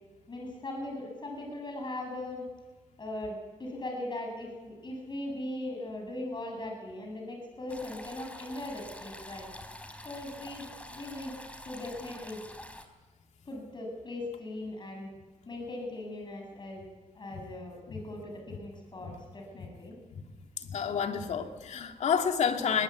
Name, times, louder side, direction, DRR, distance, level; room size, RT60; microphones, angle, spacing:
voice 1, 0.3-2.4 3.0-9.5 10.0-11.3 11.6-12.4 13.4-15.1 15.5-16.8 17.1-20.0, left 1 dB, 40° left, 1 dB, 7.5 m, -39 dB
sound 1, 7.7-12.9, left 1 dB, 10° left, 3.7 m, -46 dB
voice 2, 20.6-22.8, left 7 dB, 70° left, 5 dB, 2.5 m, -29 dB
21.5 x 21.0 x 8.3 m, 1.3 s
cardioid pair, 65°, 12 cm